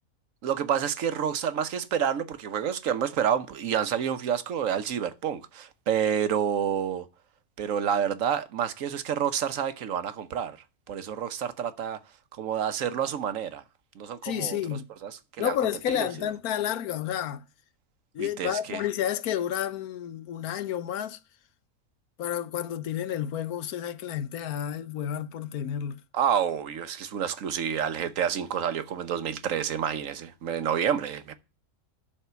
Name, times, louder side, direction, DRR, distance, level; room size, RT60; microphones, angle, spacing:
voice 1, 0.4-7.0 7.6-10.6 10.9-12.0 12.4-13.6 14.0-14.6 15.0-15.5 16.0-16.1 18.2-18.8 26.1-31.4, right 8 dB, 65° right, 1.2 m, -28 dB
voice 2, 14.2-14.9 15.4-17.4 18.1-21.2 22.2-26.0, left 10 dB, 85° left, 1.2 m, -30 dB
12.0 x 4.1 x 6.8 m
omnidirectional pair, 1.5 m